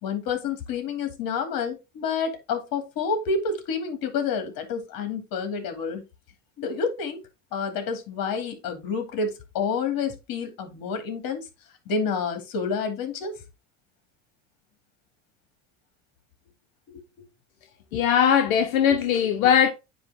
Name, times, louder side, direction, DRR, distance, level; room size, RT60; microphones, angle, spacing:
voice 1, 0.0-6.0 6.6-7.2 7.5-11.4 11.9-13.4, left 5 dB, 55° left, 2.4 m, -29 dB
voice 2, 17.9-19.7, left 8 dB, 90° left, 0.9 m, -20 dB
9.4 x 3.1 x 3.6 m
supercardioid pair, 95°, 41 cm